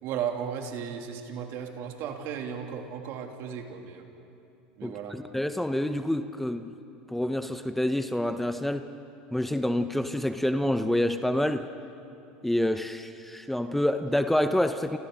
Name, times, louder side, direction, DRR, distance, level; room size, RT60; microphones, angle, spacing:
voice 1, 0.0-4.1 4.8-5.2, right 8 dB, 60° right, 3 dB, 2.8 m, -35 dB
voice 2, 4.8-6.7 7.1-8.9 9.3-11.7 12.4-15.0, left 1 dB, 5° left, 9 dB, 0.9 m, -27 dB
29.5 x 28.0 x 3.9 m, 2.6 s
hypercardioid pair, 85°, 5 cm